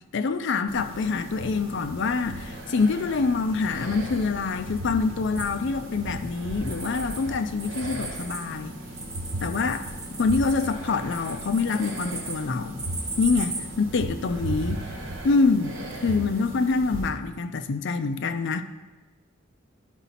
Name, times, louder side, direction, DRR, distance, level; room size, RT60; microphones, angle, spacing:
voice 1, 0.1-8.8 9.4-12.9 13.2-14.9 15.2-15.7 16.0-18.6, left 4 dB, 65° left, 0.5 m, -26 dB
sound 1, 0.7-17.1, right 1 dB, 75° right, 1.4 m, -36 dB
sound 2, 5.4-7.2 7.5-13.6, right 3 dB, 20° right, 1.2 m, -37 dB
11.5 x 4.0 x 4.2 m
head